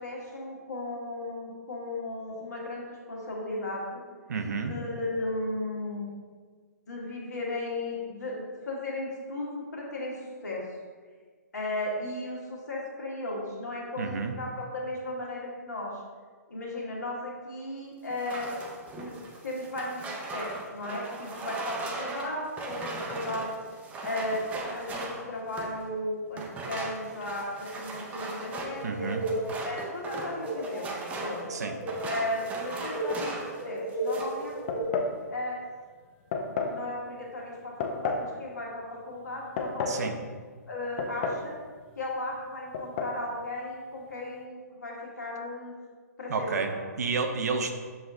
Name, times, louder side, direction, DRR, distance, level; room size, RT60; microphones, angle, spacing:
voice 1, 0.0-2.8 3.1-4.0 4.5-6.1 6.9-10.7 11.5-16.0 16.5-18.5 18.9-19.1 19.4-23.5 24.0-29.2 29.6-31.4 32.0-33.3 33.6-34.9 35.3-35.6 36.5-40.1 40.7-41.6 42.0-45.7 46.2-46.8, left 1 dB, 75° left, -3 dB, 1.3 m, -35 dB
voice 2, 4.3-4.7 14.0-14.3 28.8-29.2 31.5-31.7 39.9-40.2 46.3-47.7, right 4 dB, 70° right, 5 dB, 0.5 m, -30 dB
sound 1, 18.1-25.8 26.3-33.6 33.9-34.5, right 3 dB, 15° right, 0.5 m, -39 dB
sound 2, 28.5-34.8, right 1 dB, 20° left, 1.1 m, -35 dB
sound 3, 34.7-35.2 36.3-36.8 37.8-38.3 39.3-40.0 41.0-41.5 41.8-41.9 42.7-43.2, left 4 dB, 40° left, 0.5 m, -31 dB
6.9 x 2.4 x 2.4 m, 1.6 s
hypercardioid pair, 130°, 9 cm